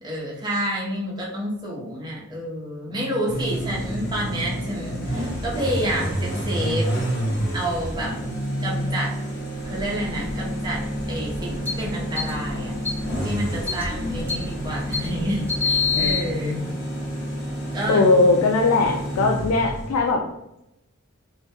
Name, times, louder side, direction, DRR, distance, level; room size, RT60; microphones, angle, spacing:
voice 1, 0.0-6.9 7.5-8.1 8.6-9.1 9.6-10.8 11.1-12.7 13.2-16.6 17.7-18.1, equal, 20° right, -4 dB, 0.6 m, -29 dB
sound 1, 3.3-20.1, equal, 50° left, 0.6 m, -29 dB
sound 2, 9.7-16.2, left 5 dB, 10° left, 0.9 m, -29 dB
voice 2, 15.9-16.7 17.9-20.2, left 3 dB, 85° left, 2 dB, 0.3 m, -20 dB
2.2 x 2.1 x 2.8 m, 0.85 s
head